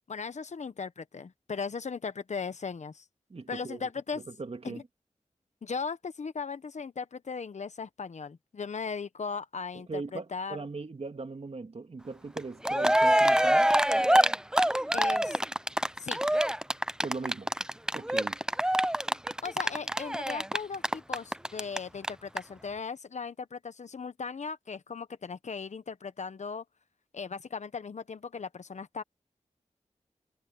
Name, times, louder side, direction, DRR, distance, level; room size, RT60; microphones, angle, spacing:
voice 1, 0.1-3.0 3.5-4.2 4.6-4.8 5.6-10.6 14.9-15.4 16.0-16.2 19.4-26.6 27.1-29.0, left 5 dB, 65° left, 1.1 m, -37 dB
voice 2, 3.3-3.9 4.1-4.8 9.9-13.7 17.0-17.5 17.9-18.4, right 3 dB, 55° right, 2.3 m, -39 dB
Cheering, 12.4-12.5 12.6-21.8 22.0-22.1 22.4-22.5, right 1 dB, 5° right, 0.7 m, -25 dB
cardioid pair, 50°, 13 cm